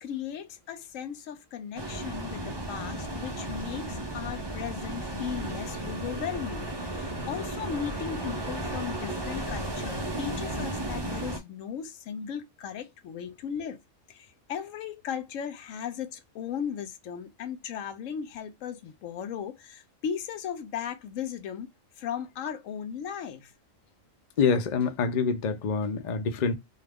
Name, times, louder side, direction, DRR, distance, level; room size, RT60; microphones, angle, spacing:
voice 1, 0.0-13.8 14.1-23.5, left 8 dB, 80° left, 1.0 m, -37 dB
sound 1, 1.8-11.4, right 1 dB, 30° right, 0.5 m, -34 dB
voice 2, 24.4-26.5, left 5 dB, 55° left, 0.5 m, -26 dB
2.4 x 2.4 x 3.3 m
omnidirectional pair, 1.3 m